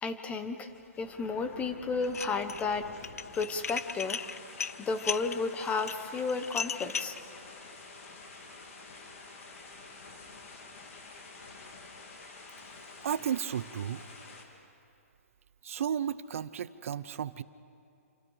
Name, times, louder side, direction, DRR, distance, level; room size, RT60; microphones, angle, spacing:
voice 1, 0.0-0.7 1.0-2.9 3.3-4.2 4.8-7.2, left 4 dB, 15° left, 9 dB, 1.3 m, -32 dB
sound 1, 0.6-14.4, left 3 dB, 65° left, 3.7 m, -49 dB
Dishes pots and pans, 2.0-2.6 3.0-7.2, left 6 dB, 85° left, 0.5 m, -36 dB
voice 2, 13.0-14.1 15.6-17.4, right 9 dB, 65° right, 16 dB, 0.7 m, -33 dB
27.5 x 25.0 x 5.0 m, 2.6 s
hypercardioid pair, 135°, 8 cm